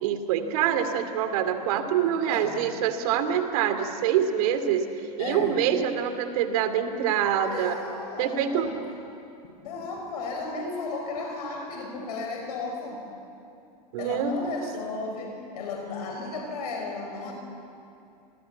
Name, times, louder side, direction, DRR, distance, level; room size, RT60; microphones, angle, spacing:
voice 1, 0.0-7.8 8.2-8.7 13.9-14.5, right 9 dB, 65° right, 9 dB, 2.6 m, -25 dB
voice 2, 2.0-2.7 5.2-5.6 7.5-8.8 9.6-13.0 14.0-17.3, left 3 dB, 70° left, 2 dB, 5.7 m, -34 dB
27.0 x 20.5 x 8.5 m, 2.6 s
hypercardioid pair, 110°, 21 cm